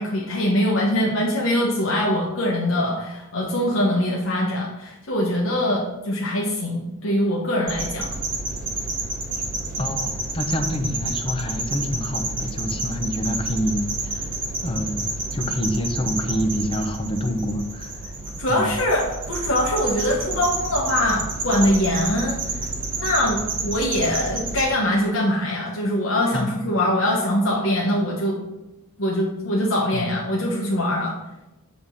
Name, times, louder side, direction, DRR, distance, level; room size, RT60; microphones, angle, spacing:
voice 1, 0.0-8.1 18.4-22.6 23.0-28.4 29.0-31.1, left 1 dB, 70° left, -3 dB, 1.1 m, -23 dB
sound 1, 7.7-24.6, right 2 dB, 45° right, 1.5 m, -29 dB
voice 2, 9.8-14.3 14.6-15.1 15.3-17.9 18.5-18.7 26.3-26.5 29.9-30.1, equal, 25° left, 5 dB, 0.8 m, -27 dB
8.6 x 3.7 x 5.6 m, 0.99 s
head